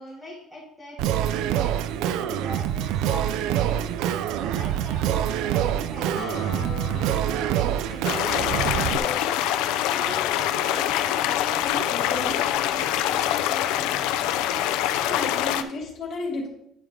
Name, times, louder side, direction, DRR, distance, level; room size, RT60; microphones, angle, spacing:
voice 1, 0.0-3.9 4.3-9.5 9.8-11.6 12.0-14.4 15.6-15.8, left 1 dB, 10° left, -9 dB, 2.4 m, -42 dB
Singing, 1.0-9.0, right 11 dB, 75° right, 0.4 m, -26 dB
Acoustic guitar, 6.2-9.9, left 2 dB, 60° left, 1.7 m, -40 dB
sound 1, 8.0-15.6, left 12 dB, 90° left, 0.5 m, -24 dB
voice 2, 11.4-12.6 15.0-16.5, left 2 dB, 45° left, -3 dB, 2.6 m, -33 dB
10.5 x 4.7 x 3.7 m, 0.77 s
cardioid pair, 150°, 0 cm